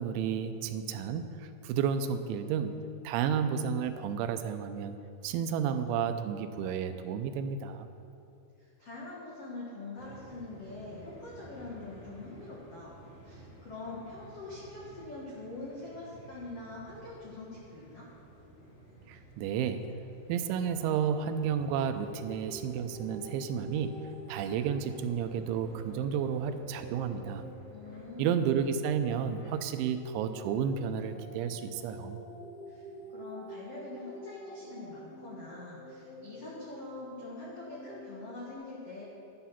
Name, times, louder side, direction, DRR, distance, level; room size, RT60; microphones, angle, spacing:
voice 1, 0.0-5.0 5.2-7.9 19.1-20.0 20.3-27.4 28.2-32.2, right 7 dB, 80° right, 9 dB, 2.9 m, -32 dB
voice 2, 8.6-12.9 13.2-18.1 27.7-28.3 32.7-32.8 33.1-39.1, left 2 dB, 75° left, -6 dB, 1.4 m, -44 dB
sound 1, 9.9-29.6, right 1 dB, 30° left, 3.8 m, -53 dB
sound 2, 22.0-29.1 30.0-38.5, equal, 45° left, 4.9 m, -48 dB
11.5 x 9.9 x 5.7 m, 2.7 s
omnidirectional pair, 5.6 m